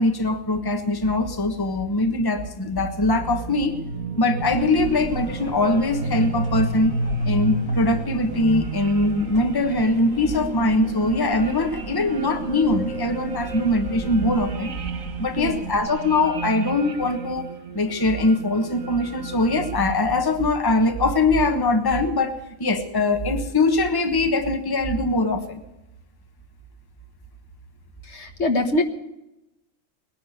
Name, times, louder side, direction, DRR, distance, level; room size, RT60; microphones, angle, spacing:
voice 1, 0.0-3.8 4.2-6.9 7.2-14.7 15.2-17.5 17.7-22.3 22.6-25.6, left 2 dB, 20° left, 7 dB, 1.3 m, -22 dB
sound 1, 2.1-20.5, right 3 dB, 90° right, 1.7 m, -32 dB
sound 2, 4.4-15.9, right 1 dB, 85° left, 3.4 m, -41 dB
voice 2, 28.0-28.8, left 2 dB, 55° left, 6 dB, 1.6 m, -23 dB
20.0 x 11.0 x 6.7 m, 0.94 s
omnidirectional pair, 1.4 m